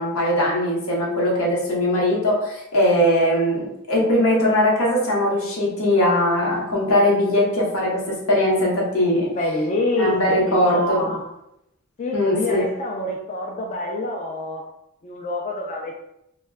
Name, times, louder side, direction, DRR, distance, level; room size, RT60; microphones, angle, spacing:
voice 1, 0.0-9.3 10.0-11.1 12.1-12.6, left 1 dB, 85° left, -3 dB, 0.8 m, -20 dB
voice 2, 9.3-10.2 10.4-11.3 12.0-14.6 15.0-16.0, left 2 dB, 35° left, 0 dB, 0.3 m, -26 dB
2.2 x 2.1 x 3.4 m, 0.81 s
head